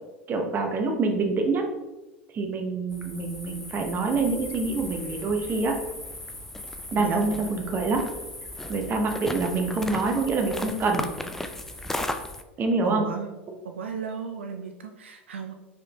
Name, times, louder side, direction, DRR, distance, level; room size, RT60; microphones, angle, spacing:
voice 1, 0.3-1.6 2.3-5.7 6.9-8.1 8.7-11.1 12.6-13.0, right 3 dB, 30° right, 3 dB, 0.8 m, -26 dB
sound 1, 2.9-12.4, left 1 dB, 5° left, 0.3 m, -36 dB
voice 2, 6.9-7.3 12.8-13.3 13.6-15.5, right 6 dB, 80° right, 5 dB, 0.4 m, -34 dB
4.7 x 3.6 x 2.9 m, 1.1 s
figure-of-eight pair, 85°, 6 cm